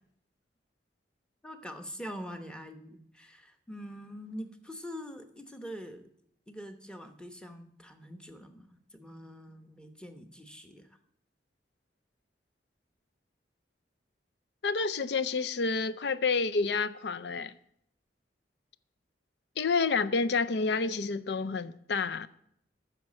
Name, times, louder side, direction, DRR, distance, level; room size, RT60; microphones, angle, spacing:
voice 1, 1.4-6.1 6.5-10.9, equal, 5° left, 0.9 m, -44 dB
voice 2, 14.6-17.5 19.6-22.3, left 4 dB, 65° left, 0.5 m, -29 dB
9.1 x 6.5 x 8.4 m
head